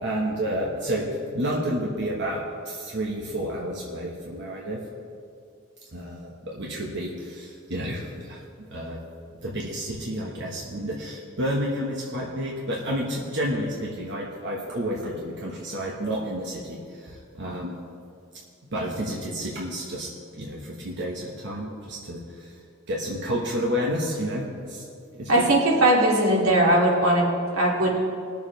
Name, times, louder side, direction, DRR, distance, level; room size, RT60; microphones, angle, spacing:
voice 1, 0.0-4.8 5.9-9.0 9.4-17.8 18.7-22.5 22.9-24.8 25.1-25.4, equal, 55° right, -3 dB, 1.3 m, -30 dB
voice 2, 25.3-27.3 27.5-27.9, right 1 dB, 90° right, -3 dB, 2.5 m, -19 dB
21.5 x 7.2 x 3.2 m, 2.4 s
head